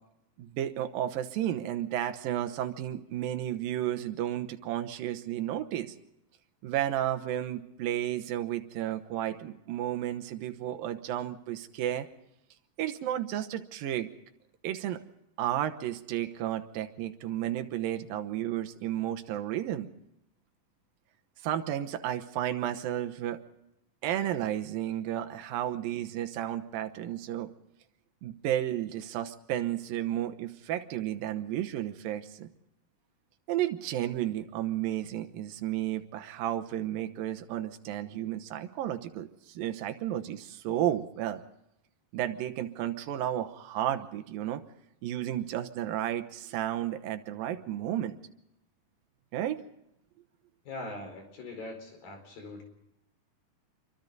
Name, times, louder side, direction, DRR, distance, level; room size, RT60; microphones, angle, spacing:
voice 1, 0.4-5.9 6.6-12.1 12.8-14.1 14.6-15.0 15.4-19.9 21.4-23.4 24.0-27.5 28.2-32.5 33.5-41.4 42.1-44.6 45.0-48.2 49.3-49.6, right 12 dB, 80° right, 7 dB, 2.9 m, -32 dB
voice 2, 50.7-52.6, left 2 dB, 85° left, 5 dB, 6.4 m, -41 dB
27.0 x 24.0 x 4.0 m, 0.84 s
omnidirectional pair, 4.0 m